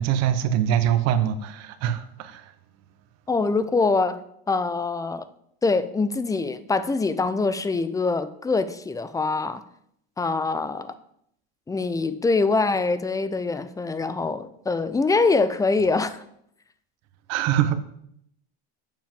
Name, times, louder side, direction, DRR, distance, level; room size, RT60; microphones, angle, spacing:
voice 1, 0.0-2.5 17.3-17.8, right 10 dB, 55° right, 1.1 m, -23 dB
voice 2, 3.3-4.2 4.5-5.3 5.6-9.6 10.2-11.0 11.7-16.2, left 3 dB, 10° left, 0.6 m, -24 dB
7.3 x 5.5 x 7.5 m
supercardioid pair, 125°, 31 cm